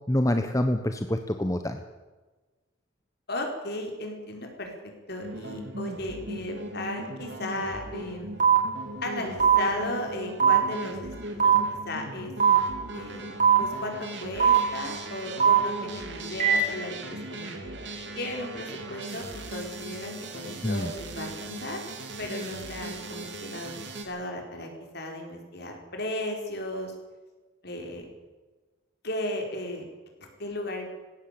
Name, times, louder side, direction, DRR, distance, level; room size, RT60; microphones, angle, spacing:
voice 1, 0.1-1.8 20.6-20.9, left 1 dB, 15° left, 7 dB, 1.0 m, -26 dB
voice 2, 3.3-8.4 9.0-11.5 11.9-12.3 12.9-13.3 13.6-17.7 18.1-21.8 22.2-23.7 24.0-26.9 27.6-28.1 29.0-29.9 30.2-30.9, left 1 dB, 55° left, 3 dB, 5.0 m, -35 dB
sound 1, 5.2-24.0, right 2 dB, 60° right, 3.5 m, -39 dB
sound 2, 8.4-8.6 9.4-9.6 10.4-10.6 11.4-11.6 12.4-12.6 13.4-13.6 14.4-14.6 15.4-15.6 16.4-16.6, right 8 dB, 40° right, 5.4 m, -18 dB
19.0 x 17.0 x 8.6 m, 1.3 s
head